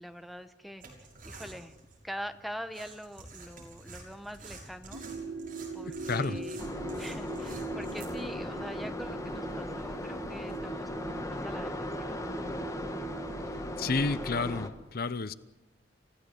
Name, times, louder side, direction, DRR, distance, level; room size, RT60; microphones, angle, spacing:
voice 1, 0.0-1.8 2.0-5.0 5.7-6.6 6.9-12.5, equal, ahead, 8 dB, 1.0 m, -44 dB
sound 1, 0.8-10.6, right 3 dB, 50° right, 6.3 m, -50 dB
sound 2, 4.9-14.5, right 3 dB, 85° right, 3.4 m, -42 dB
voice 2, 6.1-6.4 13.8-15.3, left 3 dB, 55° left, 14 dB, 0.8 m, -30 dB
sound 3, 6.6-14.7, left 1 dB, 20° left, 1.6 m, -37 dB
29.0 x 15.5 x 8.2 m, 1.0 s
head